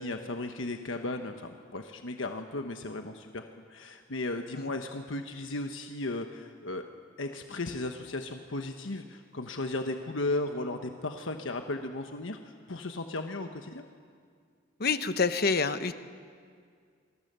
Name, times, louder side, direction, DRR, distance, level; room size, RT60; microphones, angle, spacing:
voice 1, 0.0-3.4 3.7-6.8 7.2-12.4 12.7-13.8, left 2 dB, 85° left, 5 dB, 1.2 m, -35 dB
voice 2, 14.8-15.9, left 4 dB, 55° left, 10 dB, 1.1 m, -27 dB
28.5 x 23.0 x 6.9 m, 2.1 s
head